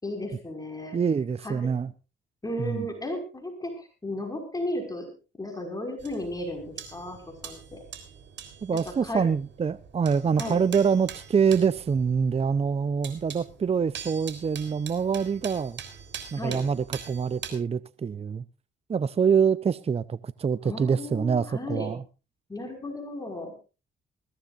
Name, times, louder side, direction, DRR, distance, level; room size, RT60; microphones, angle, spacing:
voice 1, 0.0-1.0 1.4-1.7 2.4-5.1 5.4-7.2 7.4-7.8 8.7-9.3 10.4-10.7 16.4-16.6 20.6-21.9 22.5-23.5, left 1 dB, 20° left, 5.4 m, -34 dB
voice 2, 0.9-1.9 2.6-2.9 8.6-15.8 16.3-18.4 18.9-22.0, right 6 dB, 30° right, 0.6 m, -25 dB
sound 1, 6.0-17.5, right 8 dB, 70° right, 3.8 m, -43 dB
21.5 x 16.0 x 2.5 m
cardioid pair, 90°, 20 cm